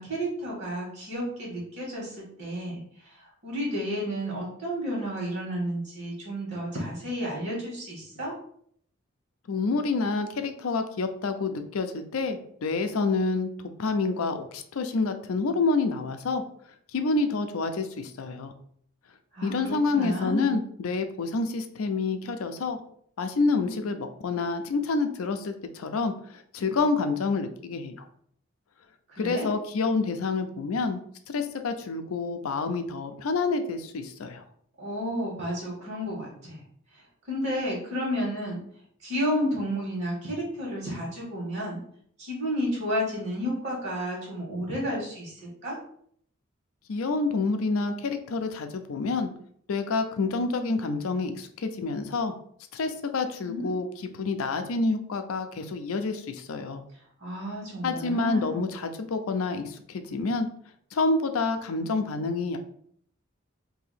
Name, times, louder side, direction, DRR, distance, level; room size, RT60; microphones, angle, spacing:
voice 1, 0.0-8.3 19.3-20.6 29.1-29.5 34.8-36.6 37.3-38.6 39.0-41.8 42.2-45.8 53.4-53.7 57.2-58.7, equal, 55° right, -6 dB, 1.4 m, -31 dB
voice 2, 9.5-13.5 13.8-16.4 16.9-18.5 19.4-22.8 23.2-28.0 29.2-31.0 31.3-34.4 46.9-49.3 49.7-52.3 52.7-56.8 57.8-60.5 60.9-62.6, left 3 dB, 80° left, 8 dB, 0.5 m, -28 dB
2.8 x 2.7 x 4.1 m, 0.64 s
head